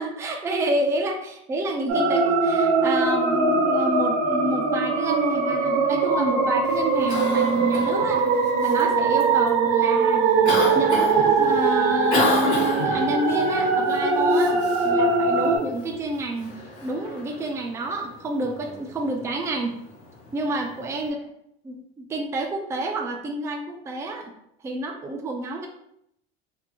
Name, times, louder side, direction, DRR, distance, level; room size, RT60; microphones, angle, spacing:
voice 1, 0.0-8.2 8.6-10.4 10.7-19.8 20.3-21.2 21.6-24.3 24.6-25.7, right 2 dB, 10° right, 2 dB, 0.3 m, -29 dB
sound 1, 1.9-15.6, right 4 dB, 60° right, 0.6 m, -21 dB
Cough, 6.6-21.1, left 2 dB, 90° left, 1.3 m, -33 dB
2.7 x 2.6 x 2.6 m, 0.77 s
supercardioid pair, 105°, 32 cm